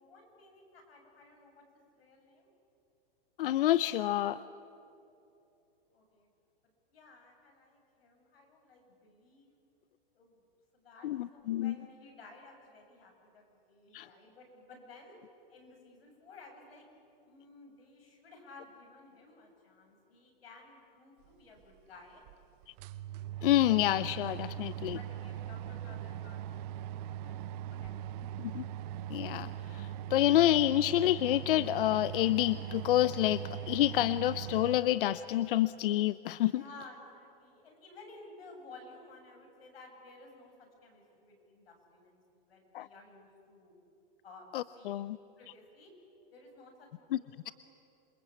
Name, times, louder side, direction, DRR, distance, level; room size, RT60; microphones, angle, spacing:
voice 1, 0.0-2.5 5.9-6.3 6.9-9.6 10.1-10.4 10.7-15.2 15.5-16.9 17.2-22.2 24.9-28.3 36.5-43.7 44.2-44.5 44.7-45.1 45.4-45.9 46.3-47.5, left 3 dB, 85° left, 2 dB, 7.6 m, -55 dB
voice 2, 3.4-4.4 11.0-11.7 13.9-14.1 23.4-25.0 28.4-28.6 29.1-36.6 42.7-42.9 44.5-45.2 47.1-47.2, left 14 dB, 65° left, 16 dB, 0.7 m, -28 dB
sound 1, 21.6-21.7 22.3-22.4 22.6-34.8, right 11 dB, 40° right, 0.9 m, -40 dB
27.5 x 23.5 x 8.5 m, 2.8 s
hypercardioid pair, 145°, 29 cm